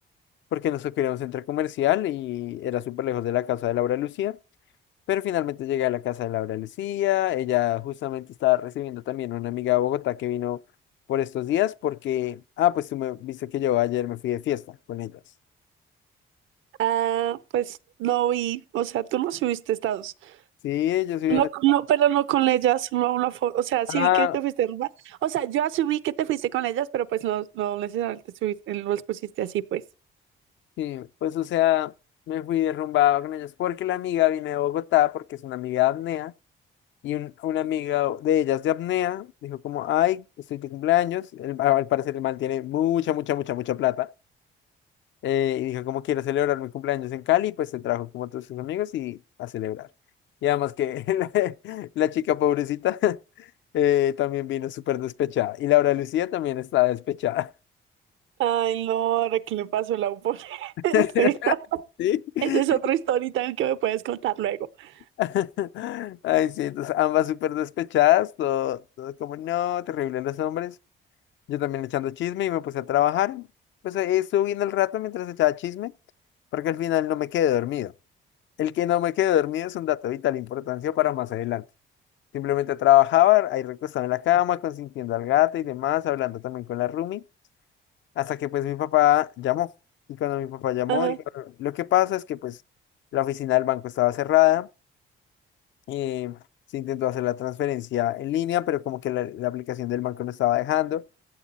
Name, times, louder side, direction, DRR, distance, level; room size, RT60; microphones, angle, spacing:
voice 1, 0.5-4.4 5.1-10.6 11.1-15.1 20.6-21.5 23.9-24.4 30.8-31.9 32.3-36.3 37.0-40.2 40.5-44.1 45.2-49.9 50.4-53.5 53.7-57.5 60.9-61.5 62.0-62.6 65.2-70.7 71.5-73.5 73.8-75.9 76.5-77.9 78.6-81.6 82.3-87.2 88.2-89.7 90.1-92.6 93.1-94.7 95.9-96.4 96.7-101.0, left 13 dB, 70° left, 0.5 m, -25 dB
voice 2, 16.8-20.3 21.3-29.8 58.4-61.8 62.4-64.9 90.9-91.2, right 12 dB, 80° right, 0.6 m, -25 dB
15.5 x 8.5 x 4.1 m
cardioid pair, 90°, 20 cm